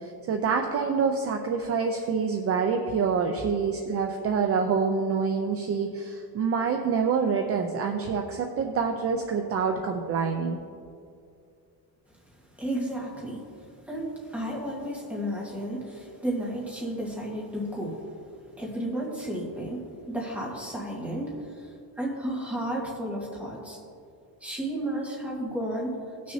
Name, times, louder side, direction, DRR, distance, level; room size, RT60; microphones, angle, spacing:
voice 1, 0.0-10.6, right 5 dB, 35° right, 4 dB, 0.6 m, -26 dB
voice 2, 12.6-13.5 13.9-18.0 18.6-21.3 22.0-23.8 24.4-26.3, right 1 dB, 5° right, -4 dB, 1.7 m, -32 dB
18.5 x 6.3 x 2.8 m, 2.4 s
cardioid pair, 165°, 40 cm